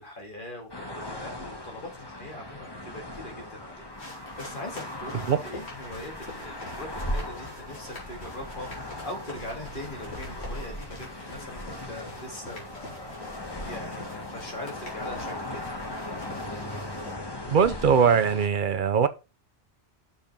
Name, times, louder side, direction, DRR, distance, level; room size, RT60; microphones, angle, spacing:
voice 1, 0.0-13.1 13.7-15.7, left 1 dB, 50° left, 2.2 m, -41 dB
sound 1, 0.7-18.5, left 1 dB, 20° left, 1.4 m, -38 dB
sound 2, 3.9-17.1, left 2 dB, 75° left, 3.4 m, -46 dB
voice 2, 17.5-19.1, right 6 dB, 55° right, 0.9 m, -21 dB
6.7 x 5.1 x 5.3 m
omnidirectional pair, 1.1 m